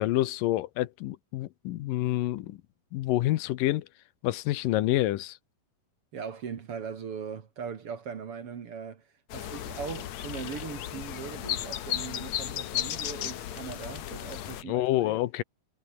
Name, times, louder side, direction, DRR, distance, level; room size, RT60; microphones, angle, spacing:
voice 1, 0.0-2.6 2.9-3.9 4.2-5.4 14.7-15.4, left 15 dB, 85° left, 2.6 m, -27 dB
voice 2, 6.1-15.2, right 6 dB, 50° right, 2.4 m, -40 dB
sound 1, 9.3-14.6, left 11 dB, 60° left, 2.3 m, -35 dB
omnidirectional pair, 3.8 m